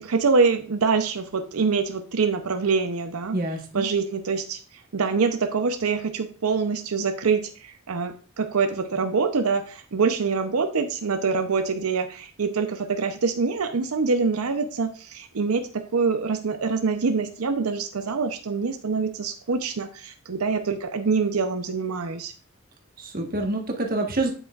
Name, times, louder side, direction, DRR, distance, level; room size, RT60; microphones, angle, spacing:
voice 1, 0.0-3.4 3.7-4.6 4.9-22.3, right 4 dB, 90° right, 7 dB, 0.7 m, -25 dB
voice 2, 3.3-3.9 23.0-24.3, right 2 dB, 40° right, 3 dB, 1.3 m, -27 dB
8.9 x 7.8 x 2.4 m, 0.40 s
head